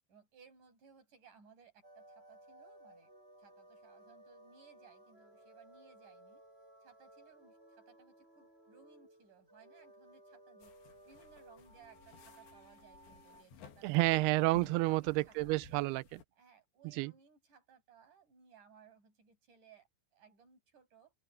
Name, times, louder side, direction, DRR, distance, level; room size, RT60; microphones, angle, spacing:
voice 1, 0.1-3.1 3.4-6.4 6.8-10.8 11.1-14.1 14.5-15.5 16.3-21.1, right 6 dB, 45° right, 9.3 m, -62 dB
sound 1, 1.8-13.4, right 1 dB, 15° right, 7.1 m, -59 dB
sound 2, 10.6-16.2, left 8 dB, 75° left, 4.4 m, -58 dB
voice 2, 13.8-16.2 17.0-17.1, right 21 dB, 85° right, 2.3 m, -30 dB
omnidirectional pair, 5.1 m